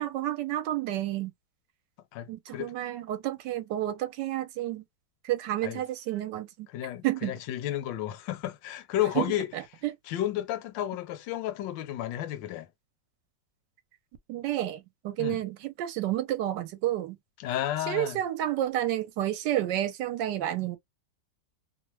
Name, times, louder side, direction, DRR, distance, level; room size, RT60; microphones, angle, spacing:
voice 1, 0.0-1.3 2.3-4.8 5.2-6.7 7.0-7.3 9.2-9.3 9.5-9.9 14.3-17.2 17.9-20.8, right 13 dB, 75° right, 1.2 m, -30 dB
voice 2, 2.1-2.7 5.6-5.8 6.7-9.5 10.1-12.7 15.2-15.4 17.4-18.2, left 12 dB, 80° left, 1.2 m, -32 dB
3.0 x 2.1 x 3.0 m
omnidirectional pair, 2.0 m